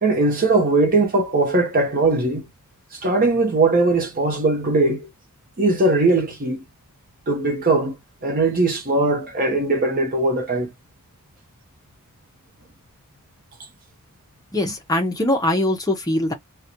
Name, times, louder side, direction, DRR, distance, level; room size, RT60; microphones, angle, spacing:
voice 1, 0.0-2.4 2.9-5.1 5.6-6.6 7.3-7.9 8.2-10.7, right 2 dB, 40° right, 0.7 m, -20 dB
voice 2, 14.5-16.3, left 1 dB, 15° left, 0.6 m, -22 dB
3.8 x 2.2 x 2.8 m
head